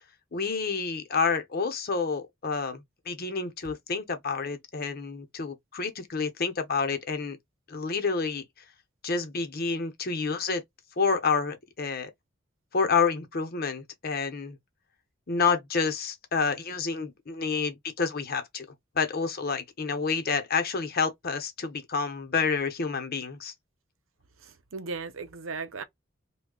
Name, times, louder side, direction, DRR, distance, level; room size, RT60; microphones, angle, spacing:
voice 1, 0.3-7.4 7.7-8.4 9.0-10.6 11.0-12.1 12.7-14.6 15.3-18.7 18.9-23.5, left 5 dB, 50° left, 0.8 m, -29 dB
voice 2, 24.4-25.8, right 4 dB, 90° right, 0.7 m, -37 dB
3.1 x 2.3 x 3.7 m
head